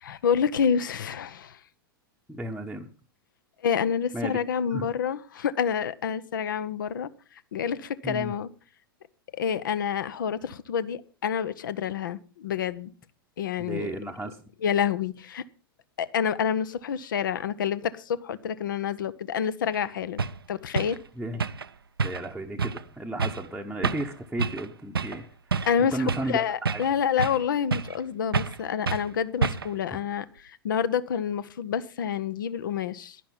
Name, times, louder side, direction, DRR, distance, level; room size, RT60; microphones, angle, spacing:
voice 1, 0.0-1.6 3.6-7.1 7.5-8.5 9.4-12.9 13.4-13.9 14.6-15.4 16.0-21.0 25.7-33.2, left 7 dB, 60° left, 0.8 m, -28 dB
voice 2, 2.3-2.9 4.1-4.4 4.7-4.9 8.0-8.3 13.6-14.4 21.2-21.4 22.0-25.2 25.9-26.4 26.7-26.8, right 1 dB, ahead, 0.9 m, -33 dB
sound 1, 19.7-19.8 20.2-20.4 20.8-21.0 21.4-21.7 22.0-22.3 22.6-22.8 23.2-23.5 23.8-24.1 24.4-24.7 25.0-25.2 25.5-26.3 26.7-27.4 27.7-28.0 28.3-28.6 28.9-29.1 29.4-29.8, right 5 dB, 75° right, 0.6 m, -28 dB
11.0 x 10.5 x 5.6 m
figure-of-eight pair, 100°, 12 cm